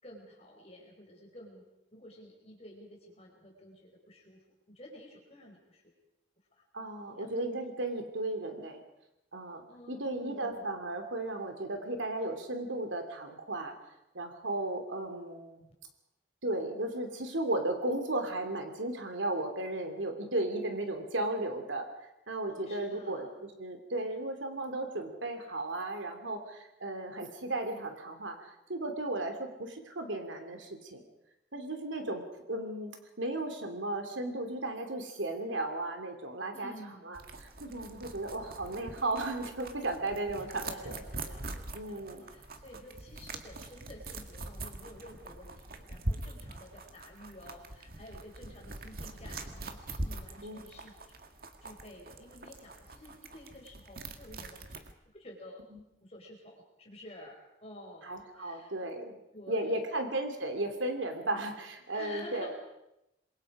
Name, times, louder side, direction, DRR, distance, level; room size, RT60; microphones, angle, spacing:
voice 1, 0.0-1.6 1.9-5.9 6.5-6.6 7.1-7.3 9.7-10.7 15.6-15.7 22.5-23.3 36.5-37.2 40.2-50.9 51.6-55.6 56.0-58.7 59.3-59.9 61.9-62.7, left 1 dB, 35° left, -1 dB, 4.9 m, -51 dB
voice 2, 6.7-8.8 9.3-13.8 14.1-15.6 16.4-21.9 22.3-31.0 31.5-32.2 32.5-32.9 33.2-36.7 37.1-41.0 41.7-42.3 50.4-50.6 58.0-59.2 59.5-62.5, right 2 dB, 90° right, 5 dB, 3.1 m, -35 dB
sound 1, 37.1-54.9, right 2 dB, 50° right, 1.9 m, -43 dB
27.5 x 22.5 x 5.0 m, 0.88 s
head